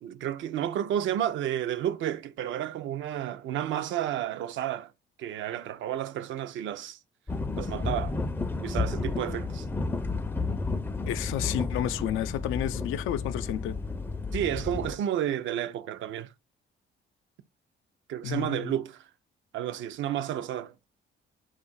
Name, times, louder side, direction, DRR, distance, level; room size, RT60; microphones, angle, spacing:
voice 1, 0.0-4.9 5.2-7.0 7.6-8.2 8.6-9.7 14.3-16.3 18.1-19.1 19.5-20.7, right 11 dB, 75° right, 0.5 m, -31 dB
sound 1, 7.3-14.9, left 3 dB, 10° left, 0.4 m, -32 dB
voice 2, 11.1-13.8 18.2-18.7, left 11 dB, 90° left, 0.4 m, -31 dB
4.3 x 2.5 x 4.0 m
cardioid pair, 90°, 20 cm